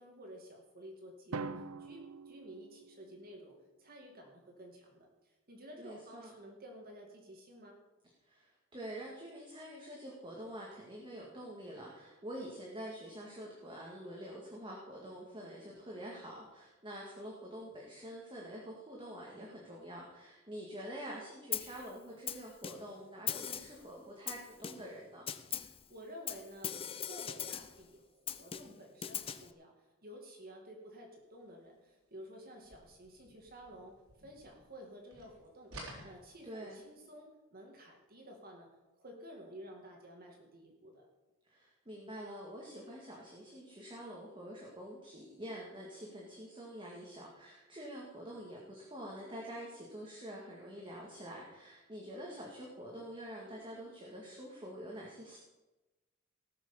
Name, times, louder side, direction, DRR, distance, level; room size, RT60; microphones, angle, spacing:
voice 1, 0.0-3.5 3.8-7.8 25.5-38.7 39.0-41.1, equal, 45° right, 1 dB, 2.1 m, -52 dB
Drum, 1.3-3.3, right 4 dB, 90° right, 0.6 m, -44 dB
voice 2, 5.8-6.3 8.2-25.3 36.4-36.8 41.4-55.4, equal, 25° right, -3 dB, 2.0 m, -46 dB
Snare drum, 21.5-21.8 22.3-23.0 23.3-23.8 24.3-25.0 25.3-25.8 26.3-27.8 28.3-29.5, left 9 dB, 25° left, 0.5 m, -40 dB
sound 1, 32.6-34.8 35.1-36.9, right 1 dB, 75° right, 4.3 m, -52 dB
17.5 x 6.3 x 7.1 m, 1.1 s
head